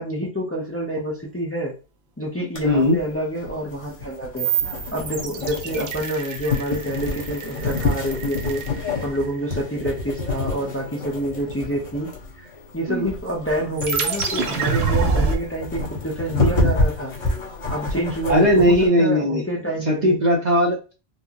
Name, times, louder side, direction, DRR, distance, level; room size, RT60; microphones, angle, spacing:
voice 1, 0.0-1.7 2.2-4.5 4.9-8.6 9.0-12.5 12.7-17.1 17.7-20.2, right 1 dB, 15° left, -2 dB, 0.6 m, -27 dB
sound 1, 2.6-18.9, left 2 dB, 30° left, 1.1 m, -28 dB
voice 2, 2.6-3.0 12.9-13.1 18.3-19.4 19.9-20.9, equal, 45° right, 0 dB, 0.8 m, -18 dB
sound 2, 4.4-9.4 13.8-15.4, right 5 dB, 70° right, 0.9 m, -26 dB
4.5 x 2.1 x 2.8 m, 0.32 s
omnidirectional pair, 1.1 m